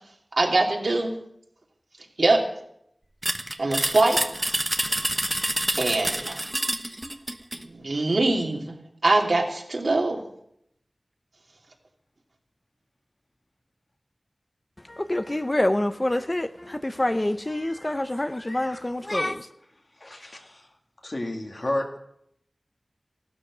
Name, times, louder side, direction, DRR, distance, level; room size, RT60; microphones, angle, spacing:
voice 1, 0.4-1.1 2.2-2.4 3.6-4.2 5.8-6.4 7.7-8.6 9.0-10.2, right 2 dB, 75° right, 0 dB, 2.7 m, -22 dB
sound 1, 3.2-7.6, right 1 dB, 25° right, 1.1 m, -27 dB
voice 2, 14.9-19.5, left 1 dB, 30° left, 9 dB, 0.7 m, -26 dB
voice 3, 20.0-20.7 21.0-22.0, left 1 dB, 50° left, 2 dB, 2.3 m, -31 dB
15.0 x 12.0 x 6.2 m, 0.75 s
wide cardioid pair, 65°, 0 cm